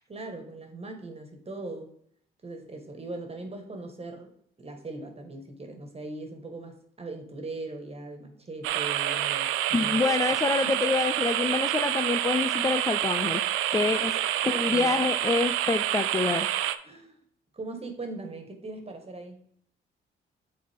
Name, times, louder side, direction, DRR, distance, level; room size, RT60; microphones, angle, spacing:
voice 1, 0.1-1.9 2.4-4.3 4.6-10.2 10.6-10.8 13.9-14.9 16.8-17.2 17.5-19.4, right 2 dB, 30° right, 5 dB, 1.7 m, -40 dB
sound 1, 8.6-16.7, right 12 dB, 80° right, 0.5 m, -27 dB
voice 2, 9.7-13.4 13.7-14.1 14.5-16.5, left 4 dB, 15° left, 9 dB, 0.4 m, -26 dB
8.3 x 3.9 x 3.6 m, 0.65 s
supercardioid pair, 75°, 21 cm